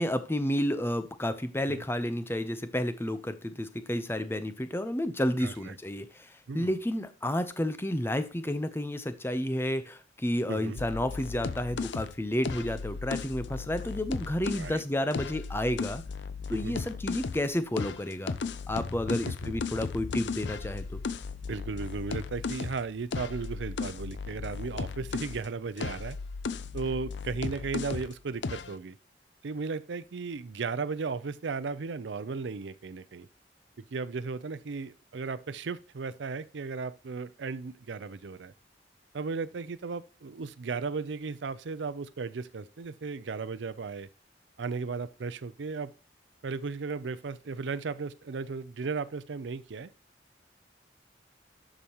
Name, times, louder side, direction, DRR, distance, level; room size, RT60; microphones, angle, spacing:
voice 1, 0.0-6.1 6.5-16.0 16.5-18.4 18.7-21.0, left 1 dB, 15° left, 0.7 m, -31 dB
voice 2, 5.4-5.8 6.5-6.8 10.5-10.8 14.5-14.8 16.5-16.8 19.1-19.5 21.5-26.2 26.7-29.0 29.4-33.3 33.8-38.5 39.1-44.1 44.6-45.9 46.4-49.9, right 4 dB, 85° right, 0.5 m, -35 dB
sound 1, 10.8-14.7 15.1-17.5 17.8-25.4 25.8-28.1 28.4-28.7, left 5 dB, 80° left, 0.5 m, -36 dB
12.5 x 5.0 x 2.9 m
head